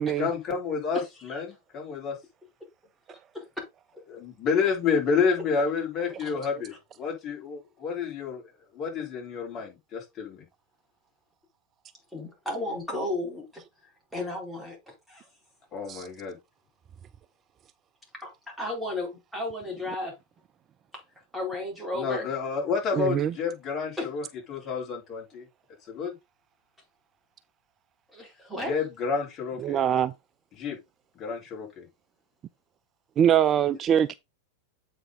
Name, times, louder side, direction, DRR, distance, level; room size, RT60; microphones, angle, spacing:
voice 1, 0.2-2.2 4.1-8.4 8.7-10.5 15.7-16.4 21.9-24.2 24.5-25.4 25.9-26.2 28.6-29.8 30.6-30.8 31.2-31.9, left 5 dB, 30° left, 3.8 m, -29 dB
voice 2, 0.9-1.4 3.3-3.6 4.6-4.7 5.4-5.5 12.1-15.3 18.2-18.3 18.6-20.1 20.9-21.0 21.3-22.3 24.0-24.1 24.6-24.7 28.1-28.8, left 2 dB, ahead, 4.4 m, -34 dB
voice 3, 23.0-23.3 29.6-30.1 33.2-34.1, right 9 dB, 30° right, 0.3 m, -23 dB
8.1 x 5.5 x 3.9 m
figure-of-eight pair, 90°, 0 cm